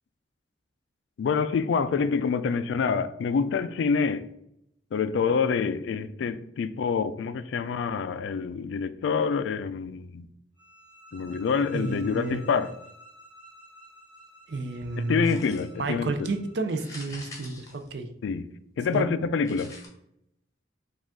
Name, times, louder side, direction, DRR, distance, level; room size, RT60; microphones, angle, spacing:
voice 1, 1.2-4.3 4.9-10.3 11.1-12.7 15.1-16.3 18.2-18.5 18.8-19.7, left 5 dB, 75° left, 0.3 m, -26 dB
sound 1, 10.6-16.7, equal, 25° right, 1.1 m, -52 dB
voice 2, 11.7-12.4 14.5-15.4 15.8-18.1 18.9-19.1, right 3 dB, 65° right, 0.5 m, -31 dB
sound 2, 15.2-15.9 16.7-18.4 19.5-19.9, left 2 dB, 20° left, 0.8 m, -45 dB
5.0 x 2.4 x 3.6 m
head